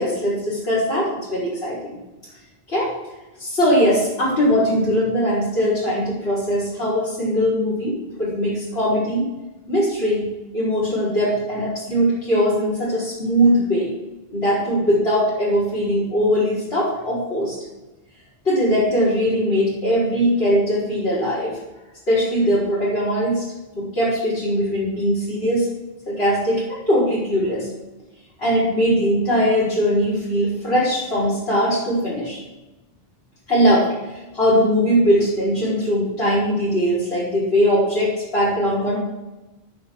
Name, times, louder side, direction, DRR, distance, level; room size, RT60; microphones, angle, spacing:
voice 1, 0.0-2.0 2.7-2.9 3.4-9.3 9.7-10.3 10.5-13.9 14.3-17.5 18.4-21.5 22.1-23.4 23.7-25.7 26.1-27.7 28.4-32.4 33.5-39.0, equal, 80° left, -9 dB, 4.8 m, -20 dB
16.5 x 6.4 x 3.8 m, 1.1 s
omnidirectional pair, 1.1 m